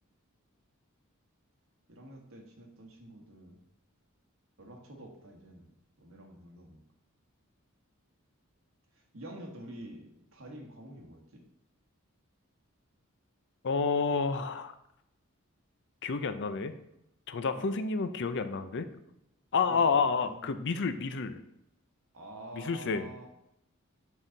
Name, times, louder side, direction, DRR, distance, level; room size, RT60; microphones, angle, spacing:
voice 1, 1.9-3.6 4.6-6.8 8.9-11.4 17.5-17.7 19.7-20.0 20.3-20.5 22.1-23.3, right 1 dB, 65° right, 2 dB, 1.5 m, -48 dB
voice 2, 13.6-14.7 16.0-16.7 17.3-18.9 19.5-21.4 22.5-23.1, left 5 dB, 55° left, 11 dB, 0.5 m, -29 dB
6.3 x 5.6 x 3.9 m, 0.81 s
head